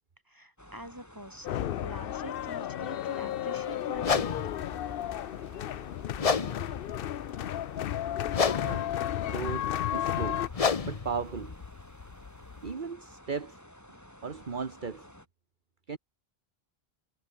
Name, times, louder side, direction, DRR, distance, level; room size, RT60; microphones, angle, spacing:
voice 1, 0.3-4.4, equal, 20° right, 8.0 m, -45 dB
sound 1, 0.6-15.3, equal, 15° left, 5.6 m, -53 dB
sound 2, 1.4-10.5, left 11 dB, 65° left, 0.7 m, -33 dB
sound 3, 4.0-12.7, left 5 dB, 40° left, 0.9 m, -33 dB
voice 2, 9.2-10.5 10.8-11.5 12.6-13.6 14.2-15.1 15.9-16.0, right 5 dB, 55° right, 1.5 m, -36 dB
omnidirectional pair, 1.0 m